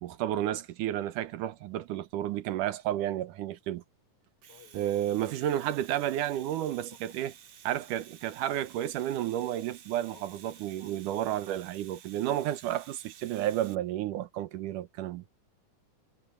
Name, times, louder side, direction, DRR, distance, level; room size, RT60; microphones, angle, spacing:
voice 1, 0.0-3.8 4.7-7.3 7.6-15.2, right 12 dB, 85° right, 2.5 m, -31 dB
Domestic sounds home sounds, 4.2-13.7, right 8 dB, 60° right, 2.8 m, -53 dB
voice 2, 4.5-5.1 6.9-7.2 10.0-11.0 11.4-11.6, left 7 dB, 65° left, 7.0 m, -58 dB
omnidirectional pair, 3.6 m